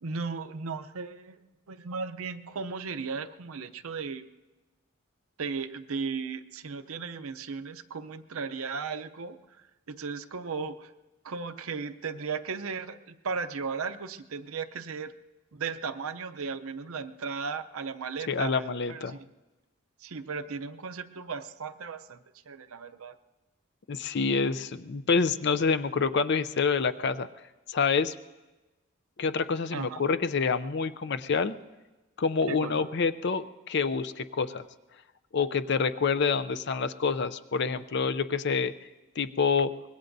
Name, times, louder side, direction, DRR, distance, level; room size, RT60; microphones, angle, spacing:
voice 1, 0.0-1.4 1.7-4.3 5.4-9.6 9.9-10.9 11.2-15.1 15.5-18.5 18.9-19.2 20.0-22.2 22.5-23.2 29.7-30.0 32.5-32.9, right 5 dB, 75° right, 9 dB, 0.6 m, -36 dB
voice 2, 18.3-19.2 23.9-27.3 27.7-28.1 29.2-31.5 32.2-34.7 35.3-38.7 39.2-39.7, left 5 dB, 50° left, 12 dB, 0.5 m, -27 dB
24.5 x 20.5 x 2.7 m, 1.1 s
head